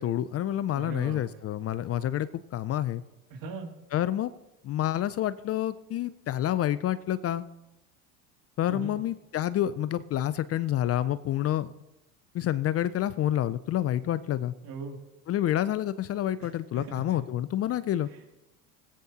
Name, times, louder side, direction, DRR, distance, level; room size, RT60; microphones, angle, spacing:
voice 1, 0.0-3.0 3.9-4.3 4.6-7.4 8.6-11.7 12.3-14.5 15.3-18.1, left 12 dB, 35° left, 15 dB, 0.5 m, -28 dB
voice 2, 0.7-1.2 3.3-3.7 8.7-9.0 14.6-15.0 16.4-16.5 16.7-17.0, right 4 dB, 55° right, 2 dB, 2.5 m, -38 dB
20.0 x 8.7 x 2.8 m, 0.94 s
hypercardioid pair, 85°, 41 cm